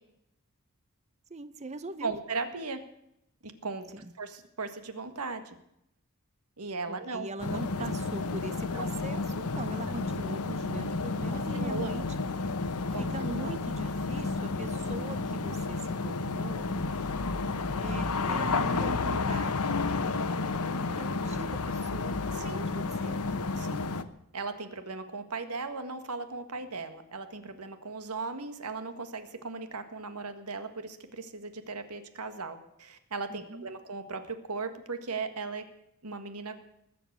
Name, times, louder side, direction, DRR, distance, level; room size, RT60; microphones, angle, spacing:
voice 1, 1.3-2.1 3.9-4.1 6.9-12.1 13.0-16.7 17.7-20.0 20.7-23.3 33.3-33.7, right 2 dB, 30° right, 12 dB, 0.8 m, -41 dB
voice 2, 2.0-2.8 3.4-5.6 6.6-7.6 8.7-8.9 11.3-11.9 12.9-13.5 22.3-22.7 23.6-23.9 24.3-35.6 36.0-36.6, right 4 dB, 90° right, 9 dB, 1.7 m, -37 dB
sound 1, 7.4-24.0, left 3 dB, 85° left, 1.0 m, -31 dB
20.5 x 7.9 x 8.2 m, 0.79 s
head